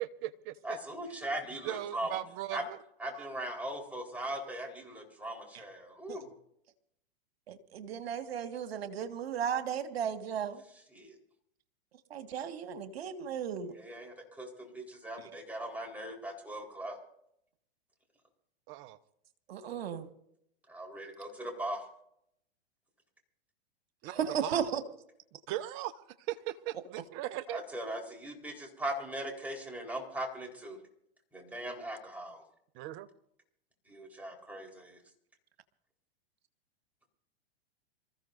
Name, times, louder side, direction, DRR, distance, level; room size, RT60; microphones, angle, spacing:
voice 1, 0.0-0.8 1.6-2.8 3.1-3.3 18.7-19.0 24.0-24.1 24.4-24.7 25.5-25.9 26.3-27.6 32.7-33.1, right 15 dB, 40° right, 13 dB, 1.0 m, -38 dB
voice 2, 0.6-2.2 2.5-2.6 3.0-6.2 10.9-11.1 13.7-17.0 20.7-21.9 27.5-30.8 31.3-32.4 33.9-35.0, right 1 dB, 5° right, 0 dB, 4.2 m, -39 dB
voice 3, 7.5-10.6 12.1-13.8 19.5-20.1 24.1-24.8, right 8 dB, 70° right, 8 dB, 1.8 m, -35 dB
27.5 x 15.0 x 2.7 m, 0.73 s
hypercardioid pair, 110°, 31 cm